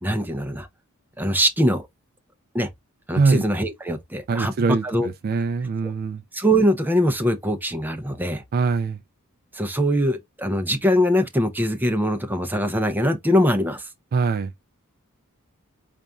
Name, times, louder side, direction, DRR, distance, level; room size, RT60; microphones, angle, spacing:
voice 1, 0.0-0.7 1.2-1.9 2.5-2.7 3.1-4.5 4.8-5.1 5.8-5.9 6.3-8.4 9.5-13.9, equal, 10° right, 0.7 m, -22 dB
voice 2, 3.1-3.5 4.3-6.2 8.5-9.0 14.1-14.5, right 4 dB, 45° right, 0.3 m, -23 dB
4.0 x 2.5 x 3.4 m
head